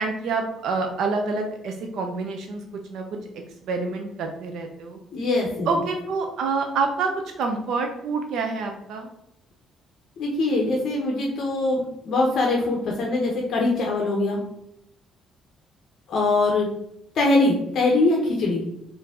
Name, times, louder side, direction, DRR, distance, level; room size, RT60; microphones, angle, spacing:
voice 1, 0.0-2.6 2.9-3.1 3.3-5.0 5.7-7.1 7.4-9.1, right 4 dB, 60° right, 4 dB, 0.5 m, -27 dB
voice 2, 5.1-5.7 10.2-14.4 16.1-16.7 17.1-18.6, left 2 dB, 45° left, -1 dB, 0.7 m, -22 dB
4.7 x 2.6 x 3.5 m, 0.82 s
cardioid pair, 175°, 0 cm